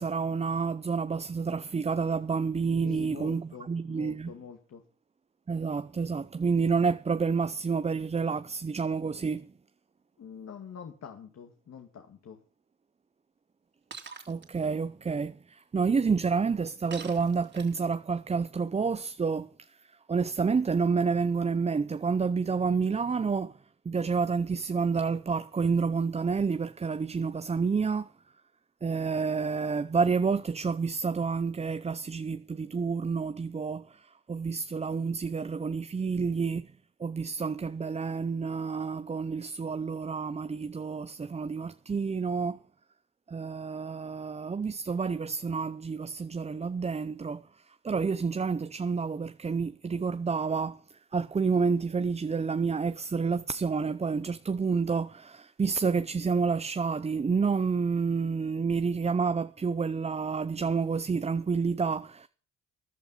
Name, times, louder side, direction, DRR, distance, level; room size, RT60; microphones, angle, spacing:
voice 1, 0.0-4.3 5.5-9.5 14.3-19.7 20.1-23.6 23.8-28.1 28.8-36.7 37.0-42.6 43.3-62.3, right 5 dB, 20° right, 0.6 m, -29 dB
voice 2, 2.8-4.8 10.2-12.4, left 7 dB, 55° left, 2.2 m, -45 dB
Shatter, 13.9-14.5 16.9-17.9, right 5 dB, 35° right, 2.7 m, -44 dB
13.5 x 11.0 x 5.7 m
cardioid pair, 90°, 30 cm